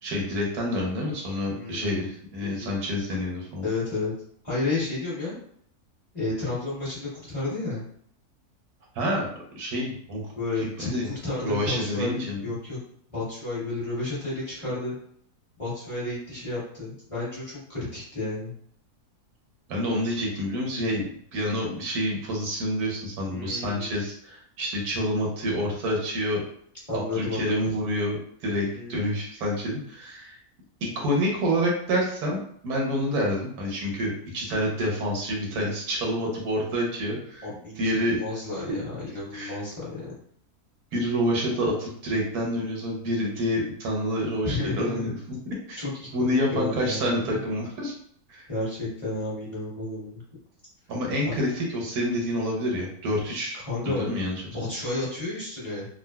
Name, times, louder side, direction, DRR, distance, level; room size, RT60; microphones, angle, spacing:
voice 1, 0.0-3.7 8.9-9.3 9.6-10.2 10.6-11.1 11.4-12.4 19.7-26.4 26.9-30.4 30.8-37.5 37.8-38.2 39.3-39.6 40.9-45.8 46.1-47.9 48.3-48.5 50.9-54.4, equal, 80° right, -1 dB, 1.4 m, -28 dB
voice 2, 1.5-2.0 2.4-2.8 3.6-4.1 4.4-5.4 6.1-7.8 10.3-12.1 12.4-12.8 13.1-14.9 15.6-18.5 23.3-23.9 26.9-27.8 28.5-28.9 37.4-40.1 44.4-45.1 45.8-47.4 48.5-50.2 53.6-54.1 54.5-55.9, left 2 dB, 25° left, -9 dB, 1.3 m, -32 dB
3.7 x 2.3 x 2.2 m, 0.64 s
omnidirectional pair, 1.6 m